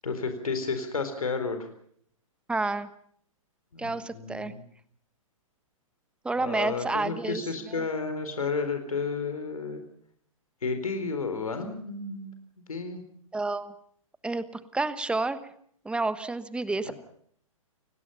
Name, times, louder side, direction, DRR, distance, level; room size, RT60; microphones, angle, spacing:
voice 1, 0.0-1.7 3.8-4.6 6.4-9.8 10.6-12.3 12.7-13.0 16.8-16.9, left 4 dB, 85° left, 7 dB, 4.2 m, -32 dB
voice 2, 2.5-2.9 3.8-4.5 6.2-7.4 7.7-7.8 13.3-13.7 14.2-14.4 14.7-15.4 15.8-16.9, right 3 dB, 5° right, 13 dB, 1.3 m, -29 dB
30.0 x 18.0 x 5.7 m, 0.64 s
hypercardioid pair, 125°, 18 cm